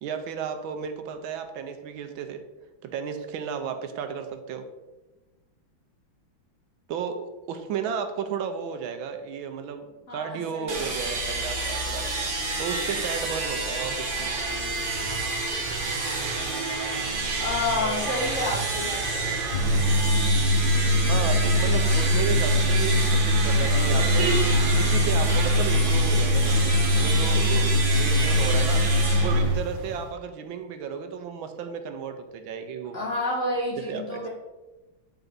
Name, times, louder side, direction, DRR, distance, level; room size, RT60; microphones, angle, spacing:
voice 1, 0.0-2.4 2.8-4.7 6.9-12.1 12.6-14.3 21.1-24.3 24.7-28.8 29.2-33.0 33.9-34.3, right 7 dB, 85° right, 7 dB, 1.5 m, -33 dB
voice 2, 10.1-10.9 17.4-19.4 32.9-34.3, left 2 dB, 35° left, -7 dB, 2.9 m, -29 dB
sound 1, 10.7-30.1, right 3 dB, 30° right, 1.1 m, -29 dB
sound 2, 19.5-29.5, left 1 dB, 70° left, 2.6 m, -22 dB
8.9 x 4.5 x 4.0 m, 1.1 s
omnidirectional pair, 2.2 m